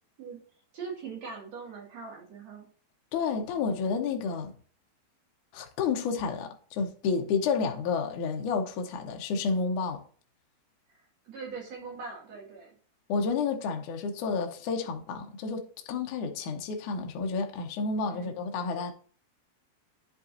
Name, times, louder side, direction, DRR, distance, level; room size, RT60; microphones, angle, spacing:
voice 1, 0.7-2.7 10.9-12.8 18.1-18.4, right 5 dB, 45° right, 3.2 m, -41 dB
voice 2, 3.1-4.5 5.5-10.0 13.1-18.9, left 5 dB, 75° left, 1.9 m, -30 dB
10.5 x 5.3 x 2.7 m
omnidirectional pair, 4.6 m